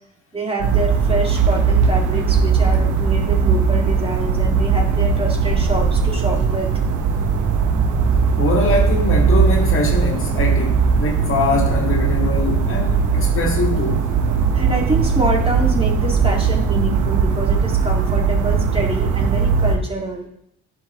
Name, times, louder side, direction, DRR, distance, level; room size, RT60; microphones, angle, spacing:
voice 1, 0.3-6.7 14.5-20.3, right 2 dB, 20° right, -1 dB, 2.0 m, -26 dB
sound 1, 0.6-19.8, right 5 dB, 80° right, 1.1 m, -18 dB
voice 2, 8.4-14.0, left 3 dB, 45° left, 0 dB, 1.6 m, -23 dB
10.5 x 5.7 x 3.0 m, 0.72 s
cardioid pair, 90°, 30 cm